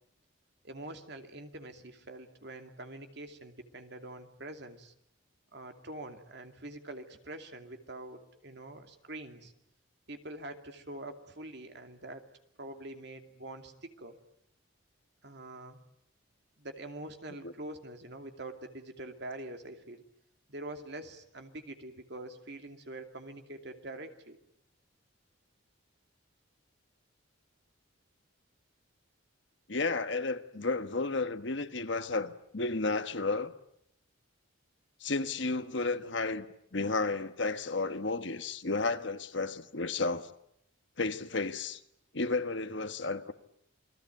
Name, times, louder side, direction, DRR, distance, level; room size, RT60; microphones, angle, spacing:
voice 1, 0.6-4.9 5.5-9.5 10.1-12.2 12.6-14.2 15.2-15.8 16.6-20.0 20.5-24.4, right 1 dB, 55° right, 2.6 m, -45 dB
voice 2, 29.7-33.5 35.0-36.5 36.7-40.3 41.0-41.8 42.1-43.3, left 3 dB, 60° left, 1.3 m, -32 dB
29.0 x 20.0 x 9.3 m
head